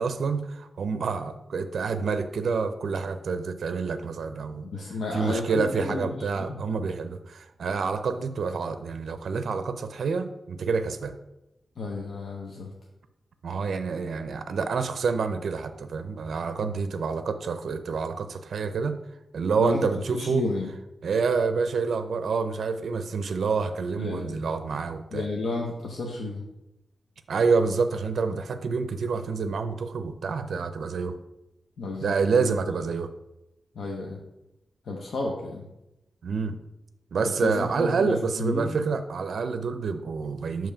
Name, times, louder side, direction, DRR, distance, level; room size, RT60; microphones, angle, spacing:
voice 1, 0.0-4.7 5.1-11.1 13.4-19.0 19.3-20.5 21.0-25.2 27.3-31.2 32.0-33.1 36.2-36.6 37.1-40.7, right 5 dB, 70° right, 9 dB, 0.4 m, -28 dB
voice 2, 4.6-6.6 11.8-12.7 16.6-16.8 19.6-20.7 24.0-24.5 25.1-26.5 31.8-32.5 33.7-34.2 34.8-35.7 37.4-38.8, left 2 dB, 70° left, -1 dB, 0.8 m, -32 dB
6.9 x 3.0 x 5.5 m, 0.92 s
wide cardioid pair, 135°, 0 cm